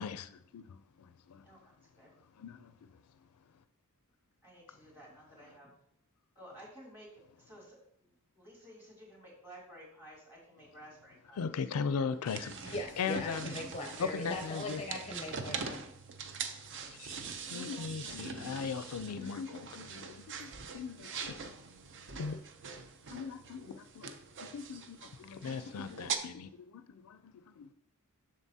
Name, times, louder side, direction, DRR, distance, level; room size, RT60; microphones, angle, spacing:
voice 1, 0.0-1.5 2.4-3.0 11.3-13.6 14.0-14.8 16.9-17.2 17.5-21.3 22.1-22.4 23.1-24.1 24.4-27.7, left 6 dB, 85° left, 0.4 m, -39 dB
voice 2, 1.4-2.2 4.4-5.7 6.3-11.9, equal, 10° right, 2.8 m, -54 dB
sound 1, 12.2-26.2, right 5 dB, 55° right, 0.6 m, -43 dB
voice 3, 12.7-15.8, left 2 dB, 30° left, 0.6 m, -40 dB
7.3 x 6.5 x 2.8 m
head